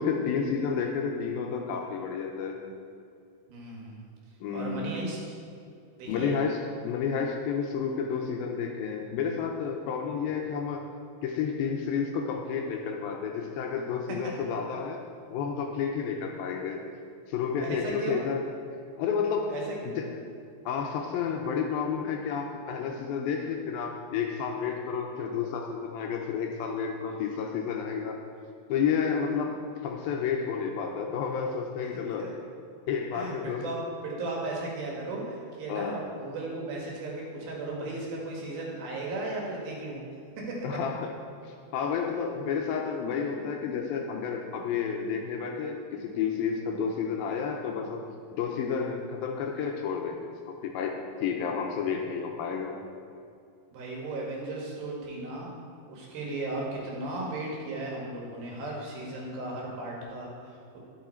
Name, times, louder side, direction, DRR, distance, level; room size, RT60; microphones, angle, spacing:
voice 1, 0.0-2.6 4.4-4.9 6.1-10.8 11.2-15.0 15.3-16.8 17.3-18.5 19.0-19.5 20.0-20.1 20.7-28.2 28.7-32.3 32.9-33.6 35.7-36.0 40.6-41.1 41.7-48.0 48.3-52.8, left 6 dB, 80° left, 2 dB, 2.3 m, -31 dB
voice 2, 3.5-4.0 4.5-5.2 6.0-6.3 17.6-18.2 19.5-20.0 32.2-32.3 33.1-40.0 40.4-40.7 53.7-55.5 55.9-60.8, right 2 dB, 70° right, -2 dB, 3.3 m, -36 dB
10.5 x 7.2 x 4.4 m, 2.5 s
omnidirectional pair, 4.5 m